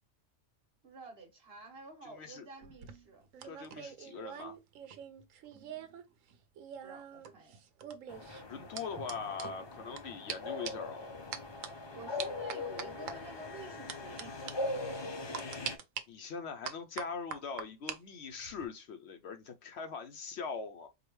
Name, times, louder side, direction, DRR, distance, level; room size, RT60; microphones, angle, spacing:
voice 1, 0.8-3.2 5.5-5.9 6.8-7.6 8.9-9.1 11.9-14.3, right 2 dB, 50° right, 1.4 m, -50 dB
voice 2, 2.0-2.5 3.4-4.6 8.5-11.1 16.1-20.9, left 5 dB, 65° left, 0.8 m, -42 dB
sound 1, 2.6-6.0 6.3-10.0 10.3-10.4 10.6-10.9 11.3-11.7 12.2-13.1 13.9-14.2 14.5-14.6 15.3-16.0 16.6-18.0 18.3-18.7, right 8 dB, 85° right, 1.0 m, -43 dB
sound 2, 8.1-15.8, left 2 dB, 35° left, 0.4 m, -41 dB
4.7 x 2.3 x 3.0 m
omnidirectional pair, 1.3 m